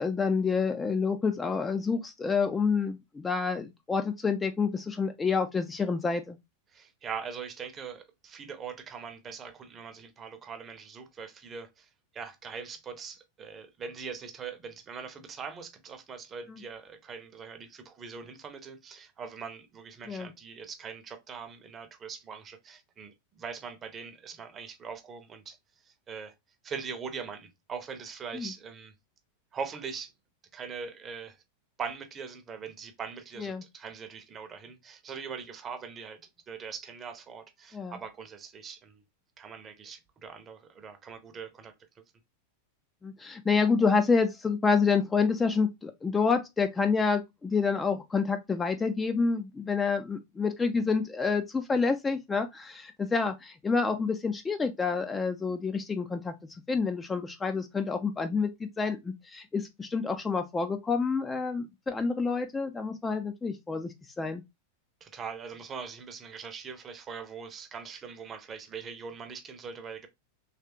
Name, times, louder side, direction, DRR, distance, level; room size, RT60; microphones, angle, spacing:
voice 1, 0.0-6.4 20.1-20.3 28.3-28.5 33.4-33.6 37.7-38.0 43.0-56.3 56.7-64.4, left 5 dB, 15° left, 0.4 m, -28 dB
voice 2, 6.7-25.6 25.8-26.3 26.6-28.9 29.5-30.1 30.5-31.4 31.8-39.0 39.4-41.7 65.0-70.1, right 6 dB, 25° right, 0.7 m, -42 dB
3.3 x 3.1 x 2.9 m
figure-of-eight pair, 90°, 0 cm